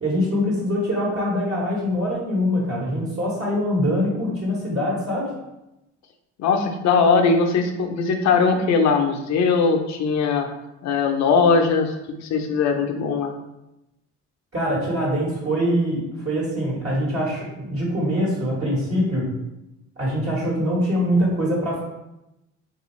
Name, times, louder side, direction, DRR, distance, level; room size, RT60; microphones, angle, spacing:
voice 1, 0.0-5.3 14.5-19.3 20.0-21.8, equal, 50° right, -6 dB, 1.2 m, -23 dB
voice 2, 6.4-10.5 10.8-11.9 12.2-13.3, left 5 dB, 65° left, 5 dB, 0.5 m, -20 dB
3.3 x 2.4 x 3.1 m, 0.92 s
cardioid pair, 90°, 30 cm